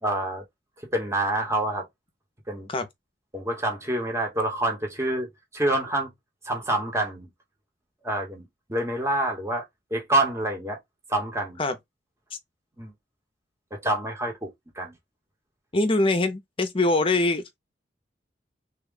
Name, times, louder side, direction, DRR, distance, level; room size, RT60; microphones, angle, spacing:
voice 1, 0.0-0.4 0.9-1.9 2.5-2.7 3.3-6.1 6.5-7.3 8.0-9.6 9.9-10.8 11.1-11.6 12.8-12.9 13.7-14.5 14.8-14.9, right 1 dB, 15° right, 1.0 m, -27 dB
voice 2, 15.7-17.6, left 2 dB, 30° left, 0.6 m, -23 dB
3.5 x 2.3 x 3.7 m
head